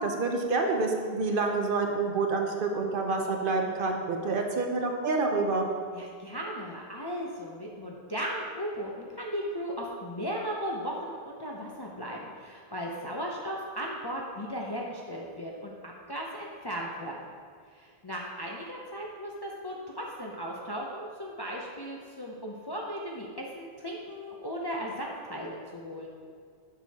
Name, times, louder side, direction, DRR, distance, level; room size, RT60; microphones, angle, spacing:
voice 1, 0.0-5.7, right 3 dB, 60° right, 2 dB, 0.8 m, -28 dB
voice 2, 5.9-17.2 17.7-26.1, equal, 30° left, -2 dB, 0.4 m, -36 dB
7.2 x 6.2 x 2.8 m, 2.1 s
omnidirectional pair, 1.1 m